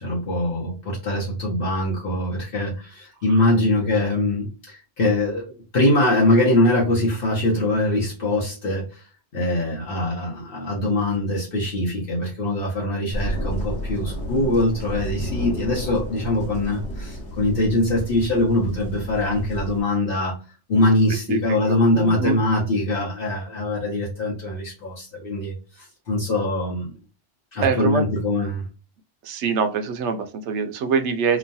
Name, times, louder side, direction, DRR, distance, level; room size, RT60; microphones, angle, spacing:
voice 1, 0.0-9.1 9.3-20.4 20.7-26.9 27.5-28.7, left 1 dB, 55° left, 1.0 m, -23 dB
sound 1, 13.1-19.8, equal, 75° left, 1.3 m, -31 dB
voice 2, 21.3-22.4 27.6-28.0 29.2-31.4, right 5 dB, 80° right, 0.9 m, -24 dB
3.0 x 2.2 x 2.6 m
omnidirectional pair, 1.2 m